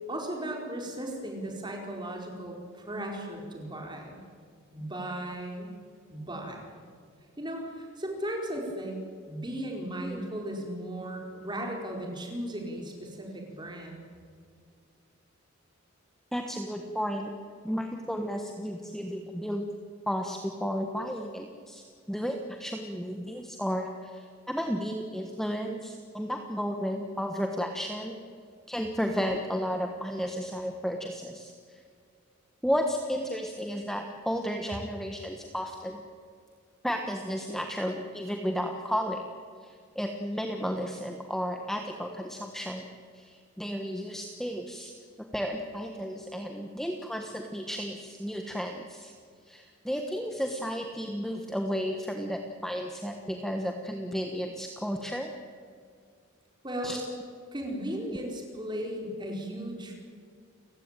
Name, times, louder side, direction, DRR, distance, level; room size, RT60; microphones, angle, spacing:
voice 1, 0.1-4.2 4.7-5.8 6.1-6.7 7.4-9.0 9.3-14.0 56.6-57.0 57.5-59.9, right 1 dB, 20° right, 1 dB, 4.5 m, -36 dB
voice 2, 16.3-17.3 17.6-19.7 20.1-28.1 28.7-31.8 32.6-36.0 36.8-39.2 39.6-42.8 43.1-44.9 45.2-49.1 49.5-55.3 56.8-57.2, equal, ahead, 3 dB, 1.3 m, -33 dB
29.5 x 16.0 x 9.0 m, 2.1 s
head